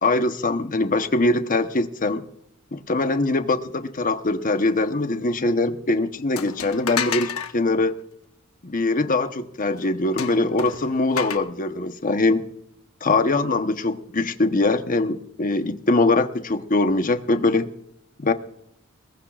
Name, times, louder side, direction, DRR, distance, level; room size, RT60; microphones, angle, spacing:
voice 1, 0.0-2.2 2.7-8.0 8.6-12.4 13.0-17.7 18.2-18.3, left 2 dB, 40° left, 8 dB, 1.1 m, -22 dB
sound 1, 6.4-7.5 10.2-11.4, left 7 dB, 85° left, 1.1 m, -29 dB
22.0 x 19.0 x 2.5 m, 0.77 s
head